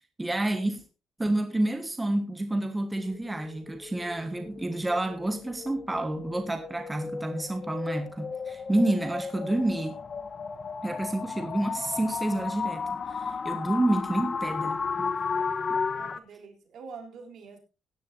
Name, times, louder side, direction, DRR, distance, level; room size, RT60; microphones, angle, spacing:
voice 1, 0.2-0.8 1.2-10.0 10.8-15.1 15.7-15.8, right 1 dB, 15° right, 1.4 m, -29 dB
sound 1, 2.9-16.2, left 5 dB, 40° left, 1.0 m, -34 dB
voice 2, 15.8-17.6, right 5 dB, 65° right, 3.6 m, -46 dB
16.5 x 10.5 x 2.7 m
cardioid pair, 90°, 0 cm